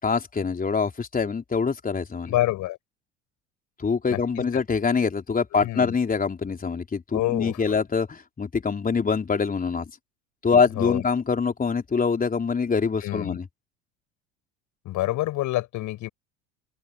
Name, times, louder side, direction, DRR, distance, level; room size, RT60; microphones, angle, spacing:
voice 1, 0.0-2.3 3.8-9.9 10.4-13.5, left 5 dB, 20° left, 4.0 m, -24 dB
voice 2, 2.3-2.8 4.1-4.2 5.6-5.9 7.1-7.6 10.5-11.0 13.0-13.4 14.8-16.1, left 16 dB, 50° left, 7.9 m, -27 dB
open air
figure-of-eight pair, 70°, 37 cm